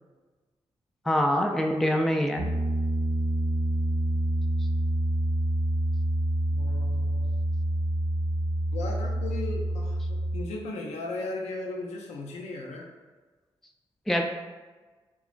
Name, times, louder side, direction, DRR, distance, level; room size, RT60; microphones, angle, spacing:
voice 1, 1.1-2.5 14.1-14.2, equal, ahead, 3 dB, 0.3 m, -24 dB
Piano, 2.4-10.4, right 1 dB, 80° right, 0.5 m, -27 dB
voice 2, 6.5-7.3 8.7-12.9, left 2 dB, 75° left, 0 dB, 0.5 m, -36 dB
2.9 x 2.2 x 2.4 m, 1.3 s
supercardioid pair, 40°, 12 cm